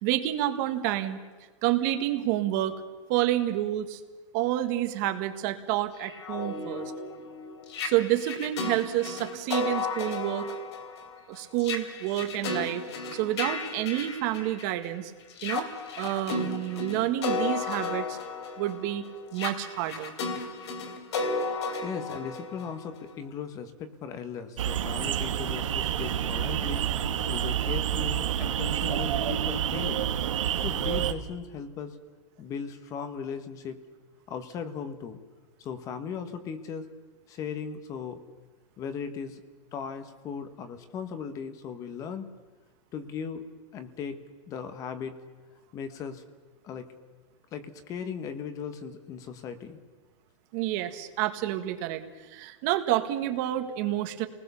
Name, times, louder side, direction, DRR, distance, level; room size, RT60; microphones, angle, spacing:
voice 1, 0.0-1.2 1.6-2.8 3.1-4.0 4.3-6.9 7.8-10.5 11.3-12.8 13.1-15.1 15.4-15.7 16.0-18.2 18.6-19.1 19.3-20.1 50.5-54.3, right 14 dB, 35° right, 8 dB, 1.6 m, -29 dB
sound 1, 6.0-14.9 15.3-23.1, left 4 dB, 60° left, 3.3 m, -34 dB
voice 2, 21.8-26.9 27.3-30.1 30.6-32.0 32.4-33.8 34.3-35.2 35.6-36.9 37.3-38.2 38.8-39.4 39.7-42.3 42.9-43.4 43.7-44.2 44.5-45.2 45.7-46.2 46.6-46.9 47.5-49.8, left 6 dB, 20° left, 10 dB, 1.3 m, -37 dB
sound 2, 24.6-31.1, right 10 dB, 80° right, 1.8 m, -28 dB
29.5 x 20.0 x 7.0 m, 1.3 s
supercardioid pair, 170°, 16 cm